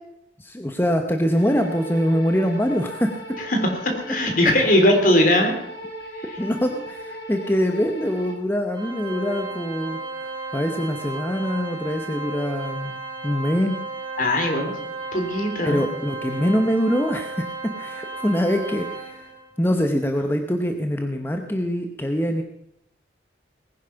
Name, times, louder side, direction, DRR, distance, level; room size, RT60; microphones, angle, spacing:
voice 1, 0.4-3.1 6.4-13.8 15.6-17.4 17.8-19.3 19.6-22.4, equal, 10° left, 5 dB, 1.0 m, -24 dB
sound 1, 1.3-8.3, equal, 70° left, 4.3 m, -37 dB
voice 2, 3.6-5.5 14.2-14.7 15.1-15.8, left 1 dB, 50° left, 4 dB, 3.4 m, -19 dB
Organ, 8.7-19.5, right 3 dB, 25° right, 3.6 m, -34 dB
19.0 x 10.5 x 5.8 m, 0.75 s
head